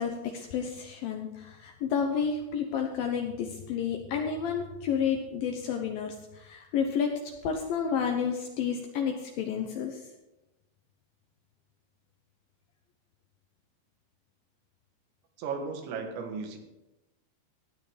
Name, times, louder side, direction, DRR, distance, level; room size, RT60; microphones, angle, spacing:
voice 1, 0.0-10.0, left 7 dB, 85° left, 3 dB, 2.0 m, -31 dB
voice 2, 15.4-16.6, right 5 dB, 75° right, 4 dB, 3.9 m, -35 dB
16.0 x 9.5 x 5.0 m, 1.0 s
omnidirectional pair, 5.5 m